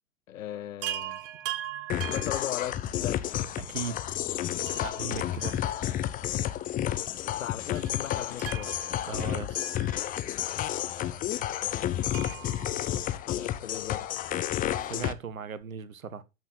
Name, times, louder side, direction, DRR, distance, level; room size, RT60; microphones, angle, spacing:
voice 1, 0.3-1.2 2.0-3.3 6.9-8.7 11.9-12.7 13.3-14.1, left 11 dB, 70° left, 0.8 m, -38 dB
Chime, 0.8-3.2 4.7-6.2 6.5-6.6 7.8-10.5 12.1-13.7 15.3-15.4 15.6-15.7, right 12 dB, 35° right, 1.5 m, -41 dB
sound 1, 1.9-15.1, left 12 dB, 20° left, 0.7 m, -31 dB
voice 2, 3.6-4.0 4.8-5.7 9.0-9.6 11.4-11.5 14.9-16.2, right 6 dB, 80° right, 1.1 m, -38 dB
13.0 x 6.3 x 4.0 m
figure-of-eight pair, 100°, 42 cm